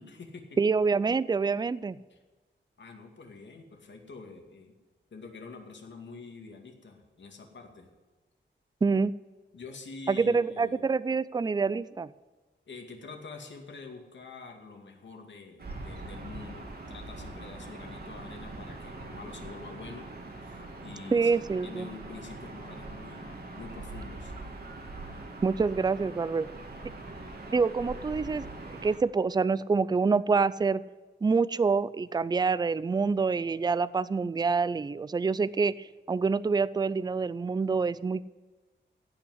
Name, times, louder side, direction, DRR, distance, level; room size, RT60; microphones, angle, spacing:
voice 1, 0.0-0.5 2.1-2.2 2.8-4.7 5.1-7.9 9.5-10.9 12.7-20.1 20.4-21.3 21.6-24.3, left 4 dB, 70° left, 2 dB, 2.3 m, -46 dB
voice 2, 0.6-2.0 8.8-9.1 10.1-12.1 21.1-21.9 25.4-26.5 27.5-28.5 28.8-30.8 31.2-38.2, right 4 dB, 20° right, 18 dB, 0.4 m, -26 dB
Gull seagull / Ocean, 15.6-29.0, right 2 dB, 55° right, 2.1 m, -42 dB
16.0 x 5.8 x 9.7 m, 1.2 s
wide cardioid pair, 150°, 20 cm